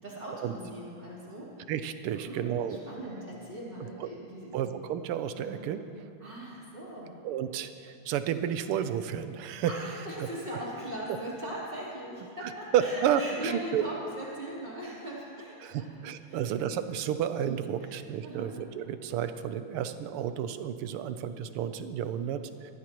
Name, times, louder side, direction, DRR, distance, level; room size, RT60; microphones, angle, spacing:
voice 1, 0.0-1.5 2.1-4.7 5.4-5.6 6.2-7.2 9.7-15.9 16.3-16.4 17.8-17.9 18.2-18.5, right 1 dB, 25° right, -7 dB, 3.7 m, -40 dB
voice 2, 1.7-2.8 4.0-4.1 4.5-5.8 7.2-9.7 12.4-13.8 15.6-22.7, right 9 dB, 85° right, 10 dB, 1.6 m, -31 dB
21.5 x 14.5 x 3.1 m, 2.5 s
omnidirectional pair, 2.4 m